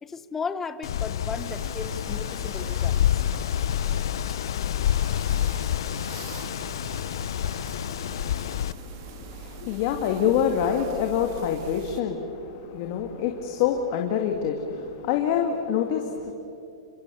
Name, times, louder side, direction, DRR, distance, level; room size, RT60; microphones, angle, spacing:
voice 1, 0.0-3.2, left 5 dB, 10° left, 12 dB, 0.9 m, -35 dB
Wind, 0.8-8.7, left 11 dB, 65° left, 0.6 m, -28 dB
sound 1, 1.4-12.0, right 7 dB, 45° right, 1.8 m, -42 dB
voice 2, 7.7-16.3, left 8 dB, 40° left, 3 dB, 2.2 m, -27 dB
29.0 x 25.5 x 7.1 m, 2.7 s
hypercardioid pair, 155°, 3 cm